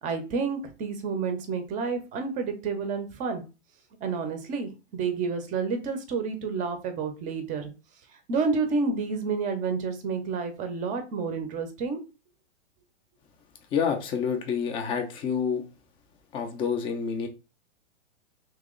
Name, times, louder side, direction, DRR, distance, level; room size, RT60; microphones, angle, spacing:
voice 1, 0.0-3.4 4.0-7.7 8.3-12.0, right 4 dB, 20° right, 6 dB, 0.7 m, -29 dB
voice 2, 13.7-15.6 16.3-17.3, left 6 dB, 15° left, 5 dB, 0.5 m, -28 dB
3.0 x 2.9 x 3.7 m, 0.31 s
hypercardioid pair, 135°, 37 cm